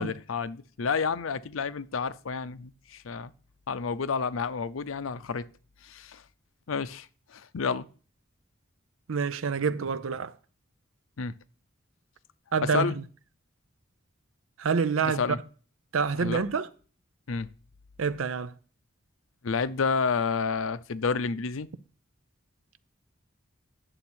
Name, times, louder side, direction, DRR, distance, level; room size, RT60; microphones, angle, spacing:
voice 1, 0.0-3.3 3.7-5.5 5.8-6.2 6.7-7.1 7.3-7.9 11.2-11.3 12.6-13.0 15.0-15.4 16.2-16.5 17.3-17.5 19.4-21.7, left 5 dB, 85° left, 0.6 m, -30 dB
voice 2, 9.1-10.3 12.5-12.9 14.6-15.2 15.9-16.7 18.0-18.5, right 5 dB, 85° right, 0.6 m, -27 dB
9.9 x 7.2 x 4.4 m
head